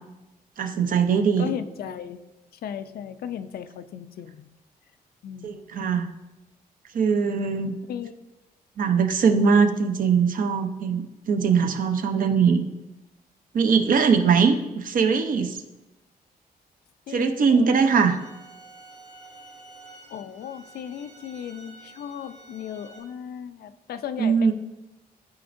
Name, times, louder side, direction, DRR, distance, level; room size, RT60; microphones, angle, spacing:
voice 1, 0.6-1.5 5.4-6.1 6.9-7.7 8.8-12.6 13.5-15.6 17.1-18.2 24.2-24.5, right 5 dB, 60° right, 7 dB, 0.7 m, -21 dB
voice 2, 1.4-2.2 2.6-4.5 5.2-5.6 7.9-8.1 12.1-12.3 17.1-18.2 20.1-24.5, left 9 dB, 75° left, 11 dB, 0.5 m, -36 dB
sound 1, 18.0-23.0, right 2 dB, 85° right, 2.0 m, -49 dB
12.5 x 5.0 x 2.6 m, 1.0 s
cardioid pair, 125°, 16 cm